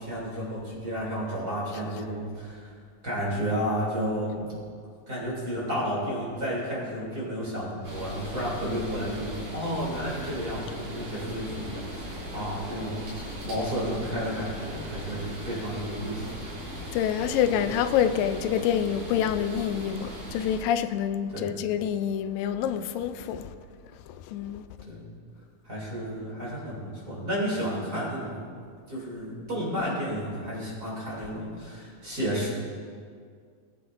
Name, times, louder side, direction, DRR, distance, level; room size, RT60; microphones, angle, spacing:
voice 1, 0.0-2.7 3.0-4.5 5.1-16.3 21.3-21.5 24.9-25.0 25.6-28.4 28.9-32.5, equal, 30° right, 3.1 m, -32 dB
sound 1, 7.8-20.6, equal, 65° right, 4.0 m, -38 dB
voice 2, 16.9-23.5 24.2-24.7, left 9 dB, 90° left, 2.3 m, -27 dB
19.5 x 9.3 x 2.6 m
omnidirectional pair, 3.9 m